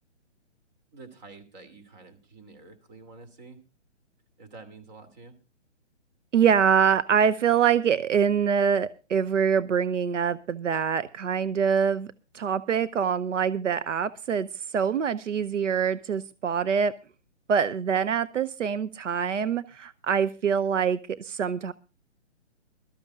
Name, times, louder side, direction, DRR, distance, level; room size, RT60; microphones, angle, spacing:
voice 1, 0.9-3.6 4.4-5.4, right 3 dB, 35° right, 8 dB, 2.8 m, -48 dB
voice 2, 6.3-12.1 12.3-14.5 14.7-16.9 17.5-21.7, right 7 dB, 85° right, 15 dB, 0.7 m, -24 dB
21.5 x 13.0 x 2.4 m, 0.32 s
hypercardioid pair, 155°, 36 cm